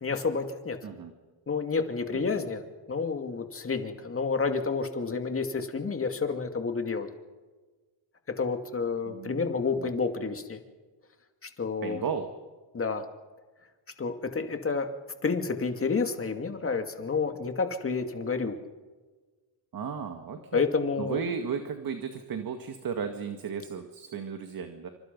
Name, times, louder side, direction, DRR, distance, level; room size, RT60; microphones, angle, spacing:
voice 1, 0.0-0.8 1.5-2.6 2.9-7.1 8.4-10.6 11.4-12.0 12.7-13.0 14.0-14.9 15.2-18.6 20.5-21.2, left 4 dB, 30° left, 6 dB, 2.5 m, -29 dB
voice 2, 9.1-9.9 11.8-12.3 19.7-20.7 21.0-24.9, right 6 dB, 50° right, 6 dB, 2.0 m, -35 dB
27.0 x 25.5 x 5.4 m, 1.3 s
cardioid pair, 115°, 43 cm